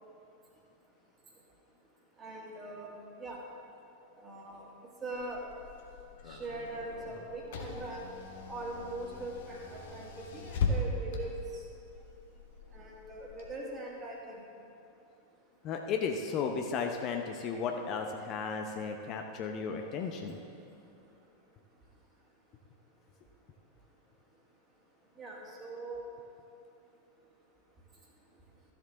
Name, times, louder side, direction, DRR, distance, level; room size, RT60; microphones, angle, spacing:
voice 1, 2.2-2.9 3.2-3.4 4.2-4.7 5.0-5.4 6.3-8.0 8.5-11.3 12.7-14.4 25.2-26.0, right 2 dB, 20° right, -2 dB, 1.9 m, -41 dB
Car / Engine, 5.1-13.4, left 3 dB, 55° left, 1.1 m, -39 dB
voice 2, 15.6-20.4, left 5 dB, 35° left, 3 dB, 0.7 m, -34 dB
13.5 x 7.3 x 3.8 m, 2.7 s
figure-of-eight pair, 90°, 0 cm